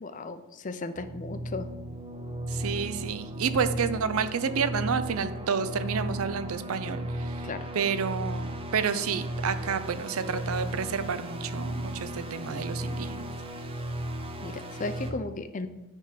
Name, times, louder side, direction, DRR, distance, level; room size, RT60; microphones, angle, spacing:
voice 1, 0.0-1.7 7.4-7.6 14.4-15.7, left 3 dB, 35° left, 10 dB, 0.5 m, -35 dB
sound 1, 1.0-15.1, right 1 dB, 25° right, 0.6 m, -35 dB
voice 2, 2.5-7.5 7.7-13.3, right 6 dB, 70° right, 12 dB, 0.5 m, -30 dB
10.0 x 3.6 x 5.8 m, 1.0 s
head